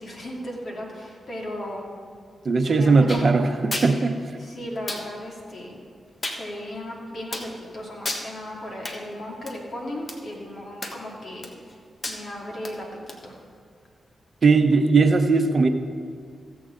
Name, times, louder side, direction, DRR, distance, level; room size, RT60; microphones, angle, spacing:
voice 1, 0.0-1.9 2.6-3.5 4.4-5.8 6.3-11.5 12.1-12.9 13.2-13.4, left 1 dB, 60° left, -2 dB, 2.5 m, -36 dB
voice 2, 2.4-4.2 14.4-15.7, right 4 dB, 55° right, 7 dB, 0.9 m, -18 dB
sound 1, 3.1-3.3 3.7-3.9 4.9-5.0 6.2-6.4 7.3-7.5 8.0-8.3 8.8-9.0 9.5-9.6 10.1-10.2 10.8-11.1 11.4-11.7 12.0-12.2 12.6-12.7 13.1-13.2, left 2 dB, 45° left, 1.4 m, -31 dB
15.5 x 7.1 x 3.9 m, 2.1 s
supercardioid pair, 45°, 0 cm